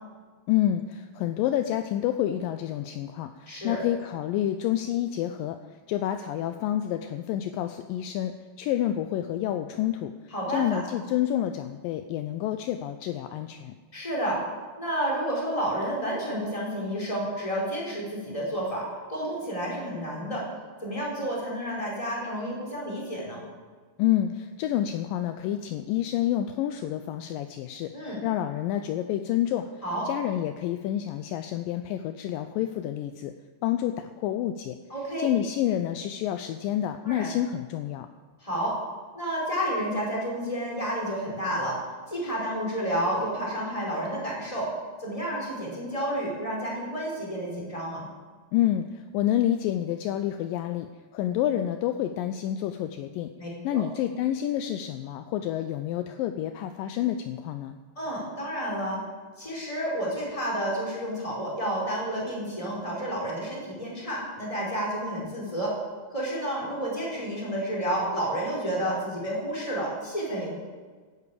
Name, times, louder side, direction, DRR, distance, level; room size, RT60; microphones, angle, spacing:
voice 1, 0.5-5.6 5.9-10.1 10.5-13.7 24.0-29.7 30.1-33.3 33.6-34.8 35.2-38.1 48.5-53.3 53.6-57.8, left 12 dB, 80° left, 8 dB, 2.0 m, -28 dB
voice 2, 3.5-3.8 10.3-10.8 13.9-14.4 14.8-20.4 20.8-23.4 27.9-28.2 29.8-30.0 34.9-35.3 37.0-37.3 38.4-38.8 39.1-41.8 42.1-44.7 45.0-48.1 53.4-53.8 58.0-59.0 59.4-65.7 66.1-70.5, right 1 dB, 10° left, -4 dB, 4.3 m, -30 dB
12.0 x 11.0 x 8.6 m, 1.5 s
omnidirectional pair, 4.5 m